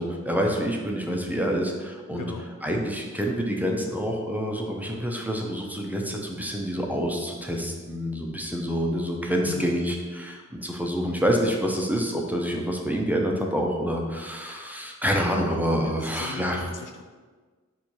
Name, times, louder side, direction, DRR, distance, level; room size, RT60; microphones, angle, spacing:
voice 1, 0.0-2.3 2.6-16.6, equal, 5° right, 0 dB, 0.6 m, -27 dB
voice 2, 2.1-2.5 9.5-9.8 15.8-17.0, left 6 dB, 80° left, 5 dB, 0.5 m, -38 dB
4.2 x 2.6 x 4.5 m, 1.4 s
wide cardioid pair, 55°, 31 cm